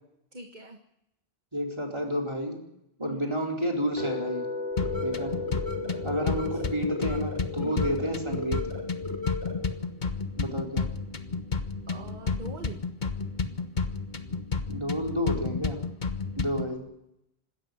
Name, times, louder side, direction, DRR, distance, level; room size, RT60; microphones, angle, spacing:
voice 1, 0.3-0.8 3.0-3.4 6.5-7.1 7.6-8.0 11.9-12.8, right 2 dB, 45° right, 4 dB, 1.8 m, -41 dB
voice 2, 1.5-2.6 3.0-4.5 5.0-5.3 6.0-8.7 10.4-10.9 14.7-15.8 16.4-16.8, equal, 25° right, 0 dB, 4.5 m, -30 dB
sound 1, 4.0-10.0, left 2 dB, 70° left, 3.4 m, -38 dB
sound 2, 4.7-9.7, left 4 dB, 20° left, 5.0 m, -36 dB
sound 3, 4.8-16.8, left 4 dB, 45° left, 1.4 m, -32 dB
26.0 x 13.5 x 9.7 m, 0.83 s
omnidirectional pair, 1.1 m